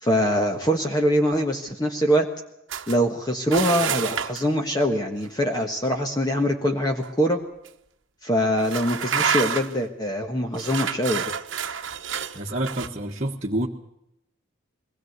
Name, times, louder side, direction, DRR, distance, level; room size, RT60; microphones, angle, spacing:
voice 1, 0.0-2.3 2.9-7.4 8.2-11.2, equal, 20° left, 3 dB, 1.4 m, -23 dB
sound 1, 2.7-3.0 3.5-4.5 7.0-7.2 7.7-7.8 8.6-9.8 10.5-12.9, right 7 dB, 60° right, 1.2 m, -28 dB
voice 2, 12.3-13.7, right 1 dB, 35° right, -4 dB, 1.5 m, -28 dB
22.0 x 17.5 x 8.1 m, 0.81 s
head